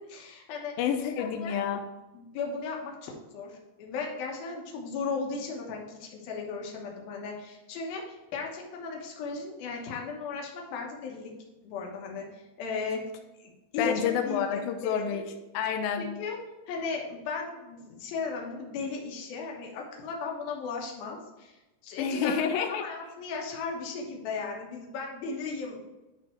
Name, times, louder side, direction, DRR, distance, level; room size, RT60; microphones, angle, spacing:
voice 1, 0.1-0.8 1.2-1.5 2.1-11.3 11.6-13.0 13.4-15.2 16.0-16.4 16.7-22.4 22.8-25.9, left 4 dB, 70° left, 0 dB, 2.8 m, -36 dB
voice 2, 0.8-1.8 13.8-15.2 15.5-16.1 22.0-22.8, left 8 dB, 85° left, 4 dB, 2.0 m, -29 dB
11.0 x 3.7 x 4.5 m, 1.0 s
omnidirectional pair, 4.9 m